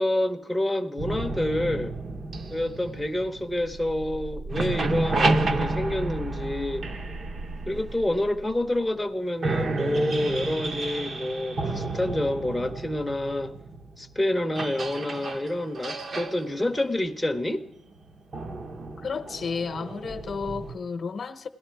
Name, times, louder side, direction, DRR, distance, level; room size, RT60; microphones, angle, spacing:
voice 1, 0.0-2.0 2.5-6.8 7.7-13.6 14.0-17.6, left 1 dB, 5° left, 0.6 m, -28 dB
sound 1, 1.0-4.2 4.4-8.4 9.0-9.1 9.4-20.8, right 3 dB, 45° right, 0.8 m, -31 dB
sound 2, 3.5-9.0 9.5-9.6, right 2 dB, 65° right, 0.9 m, -37 dB
voice 2, 19.0-21.5, left 5 dB, 45° left, 0.8 m, -32 dB
17.0 x 12.0 x 4.5 m
cardioid pair, 125°, 0 cm